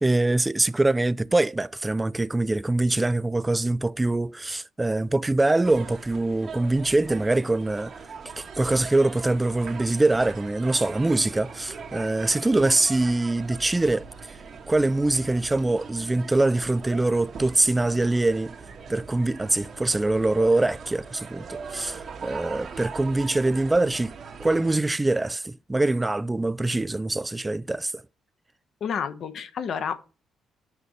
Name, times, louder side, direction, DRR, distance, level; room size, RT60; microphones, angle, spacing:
voice 1, 0.0-7.9 8.4-14.0 14.7-18.5 18.9-27.9, right 2 dB, 15° right, 0.3 m, -24 dB
sound 1, 5.6-24.8, right 5 dB, 55° right, 1.6 m, -41 dB
voice 2, 28.8-30.2, left 7 dB, 60° left, 1.0 m, -30 dB
6.6 x 5.3 x 6.3 m
cardioid pair, 90°, 0 cm